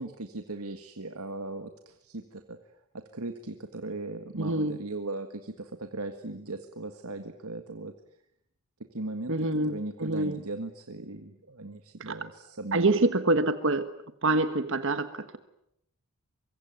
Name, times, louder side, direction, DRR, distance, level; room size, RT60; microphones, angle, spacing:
voice 1, 0.0-2.6 2.9-7.9 8.9-13.0, right 2 dB, 90° right, 7 dB, 1.8 m, -38 dB
voice 2, 4.4-4.8 9.3-10.4 12.1-12.2 12.7-13.9 14.2-15.4, right 2 dB, 60° right, 10 dB, 1.4 m, -26 dB
25.0 x 23.0 x 9.3 m, 0.77 s
head